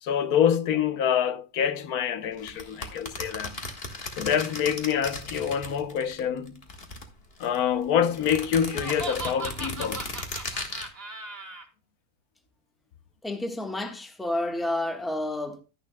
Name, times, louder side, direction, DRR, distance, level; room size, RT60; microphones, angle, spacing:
voice 1, 0.0-3.6 4.2-6.6 7.4-10.0, left 8 dB, 90° left, 1.3 m, -26 dB
sound 1, 2.4-6.2 6.5-7.6 8.1-10.9, left 2 dB, 40° left, 1.8 m, -36 dB
Laughter, 8.6-11.6, right 3 dB, 40° right, 1.8 m, -38 dB
voice 2, 13.2-15.6, left 1 dB, ahead, 1.2 m, -30 dB
11.5 x 10.5 x 2.2 m
omnidirectional pair, 1.5 m